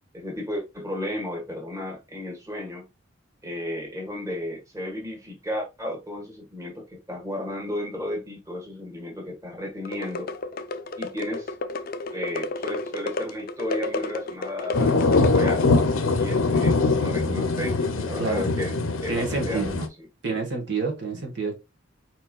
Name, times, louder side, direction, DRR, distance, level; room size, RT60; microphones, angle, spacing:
voice 1, 0.1-2.9 3.4-10.3 11.0-11.5 12.1-15.7 16.2-18.8 19.0-19.7 21.1-21.2, left 1 dB, 15° right, 1.5 m, -33 dB
sound 1, 9.9-15.9, left 3 dB, 45° left, 0.5 m, -32 dB
Thunderstorm medium rain city street, 14.7-19.9, left 3 dB, 85° left, 0.7 m, -22 dB
voice 2, 19.1-19.9 20.2-21.6, right 4 dB, 60° right, 1.4 m, -28 dB
4.5 x 4.4 x 2.3 m
head